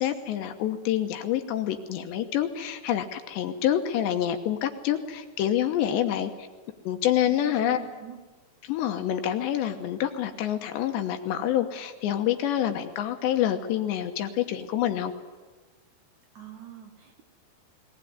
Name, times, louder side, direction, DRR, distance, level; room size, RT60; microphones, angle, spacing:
voice 1, 0.0-6.5 6.8-7.8 8.6-15.1, left 11 dB, 75° left, 7 dB, 3.0 m, -27 dB
voice 2, 5.9-6.3 7.2-8.2 16.3-17.2, right 9 dB, 65° right, 2 dB, 2.0 m, -45 dB
19.5 x 19.0 x 9.5 m, 1.3 s
omnidirectional pair, 5.7 m